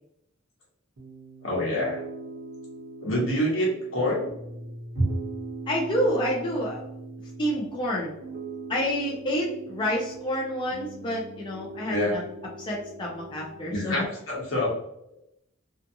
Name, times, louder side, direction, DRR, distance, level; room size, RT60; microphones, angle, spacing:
Piano, 1.0-14.0, right 3 dB, 55° right, 0.6 m, -41 dB
voice 1, 1.4-2.0 3.0-4.3 5.0-5.1 11.9-12.1 13.7-14.7, equal, 75° left, -4 dB, 1.1 m, -26 dB
voice 2, 5.7-6.9 7.4-8.1 8.7-12.2 12.6-14.1, equal, 25° left, -3 dB, 0.4 m, -28 dB
2.5 x 2.4 x 2.6 m, 0.81 s
head